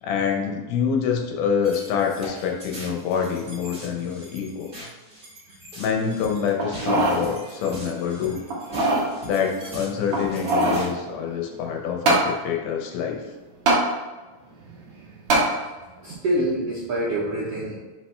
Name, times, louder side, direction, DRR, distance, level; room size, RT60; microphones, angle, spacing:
voice 1, 0.0-4.7 5.8-8.4 9.2-13.3, left 7 dB, 75° left, 1 dB, 2.0 m, -26 dB
sound 1, 1.6-10.9, equal, 30° right, 1.2 m, -41 dB
sound 2, 6.6-7.2 7.7-7.8 8.5-9.1 10.1-10.9 12.1-12.3 13.7-13.8 15.3-15.5 16.1-16.2, right 2 dB, 65° right, 1.4 m, -21 dB
voice 2, 16.0-17.8, right 1 dB, 90° right, -5 dB, 1.3 m, -26 dB
6.0 x 4.9 x 3.3 m, 1.2 s
omnidirectional pair, 4.2 m